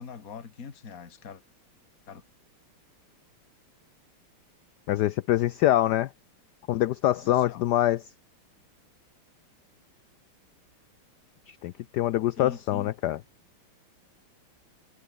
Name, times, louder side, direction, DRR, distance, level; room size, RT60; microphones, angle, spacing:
voice 1, 0.0-1.4 2.1-2.2 7.1-7.6 12.4-12.9, left 6 dB, 40° left, 2.4 m, -42 dB
voice 2, 4.9-6.1 6.7-8.0 11.5-13.2, left 14 dB, 80° left, 0.9 m, -25 dB
omnidirectional pair, 2.3 m